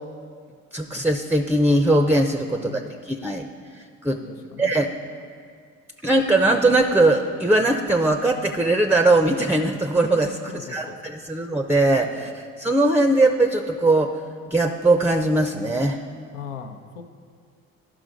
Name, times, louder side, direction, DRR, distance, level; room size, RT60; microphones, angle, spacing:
voice 1, 0.7-3.5 4.0-4.2 4.6-4.9 6.0-12.3 12.6-14.2 14.5-16.0, right 2 dB, 5° right, 6 dB, 0.5 m, -20 dB
voice 2, 2.6-3.0 4.2-4.7 10.5-11.1 12.1-12.3 16.3-17.0, left 7 dB, 80° left, 6 dB, 0.8 m, -39 dB
11.0 x 6.0 x 5.1 m, 2.1 s
hypercardioid pair, 55°, 37 cm